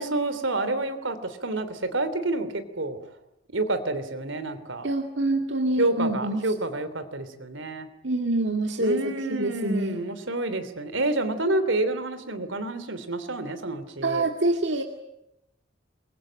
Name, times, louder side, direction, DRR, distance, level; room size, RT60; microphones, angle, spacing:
voice 1, 0.0-3.0 3.5-4.9 5.8-7.9 8.8-14.2, right 2 dB, 80° right, 11 dB, 3.2 m, -28 dB
voice 2, 4.8-6.4 8.0-9.0 9.3-10.0 14.0-14.8, right 2 dB, 65° right, 4 dB, 2.1 m, -25 dB
27.0 x 22.5 x 8.9 m, 0.85 s
head